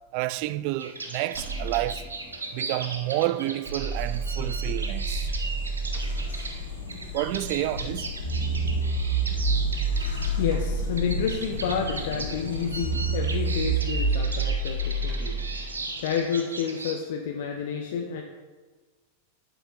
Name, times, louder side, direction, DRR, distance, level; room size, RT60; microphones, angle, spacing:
voice 1, 0.1-2.0 2.5-5.3 7.1-8.1, right 16 dB, 50° right, 0.3 m, -29 dB
sound 1, 0.8-16.9, right 3 dB, 80° right, 0.8 m, -38 dB
sound 2, 1.3-6.5 8.2-15.7, right 3 dB, 30° right, 1.8 m, -29 dB
sound 3, 3.9-13.8, left 5 dB, 80° left, 1.9 m, -36 dB
voice 2, 10.3-15.4 16.0-18.2, left 6 dB, 60° left, 0.7 m, -30 dB
8.2 x 7.0 x 3.9 m
figure-of-eight pair, 90°, 0 cm